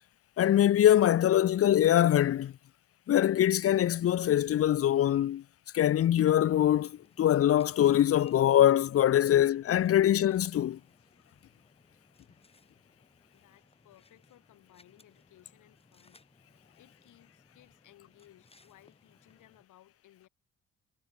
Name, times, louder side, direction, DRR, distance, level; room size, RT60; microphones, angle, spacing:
voice 1, 0.4-2.5 3.1-5.4 5.7-10.8, left 11 dB, 50° left, 0.7 m, -23 dB
sound 1, 6.3-19.6, left 3 dB, 20° left, 6.0 m, -64 dB
voice 2, 13.3-16.2 16.5-20.3, left 14 dB, 80° left, 5.6 m, -61 dB
cardioid pair, 90°, 30 cm